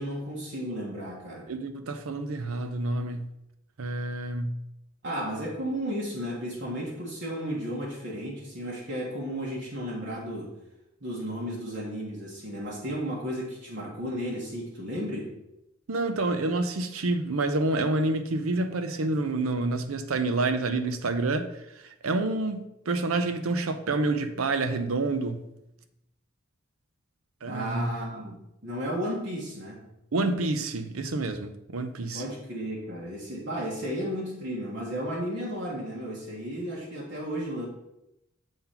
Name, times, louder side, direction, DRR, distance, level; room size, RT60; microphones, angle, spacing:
voice 1, 0.0-1.5 5.0-10.5 11.0-15.3 27.5-28.4 28.6-29.8 32.1-37.7, equal, 55° right, 1.5 m, -33 dB
voice 2, 1.5-3.3 3.8-4.6 15.9-25.4 27.4-27.9 30.1-32.2, right 2 dB, 90° right, 0.7 m, -28 dB
7.1 x 4.0 x 5.8 m
head